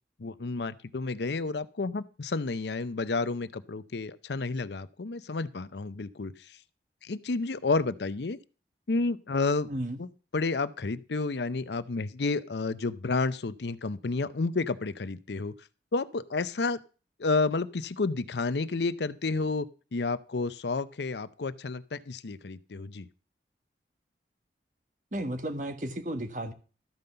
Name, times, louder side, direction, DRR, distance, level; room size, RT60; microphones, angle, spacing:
voice 1, 0.2-6.3 7.0-8.4 8.9-9.7 10.0-10.1 10.3-15.5 15.9-16.8 17.2-19.7 19.9-23.1, left 3 dB, 80° left, 15 dB, 0.6 m, -30 dB
voice 2, 9.7-10.0 25.1-26.5, right 1 dB, 45° right, 8 dB, 1.4 m, -33 dB
13.5 x 5.4 x 6.7 m, 0.36 s
head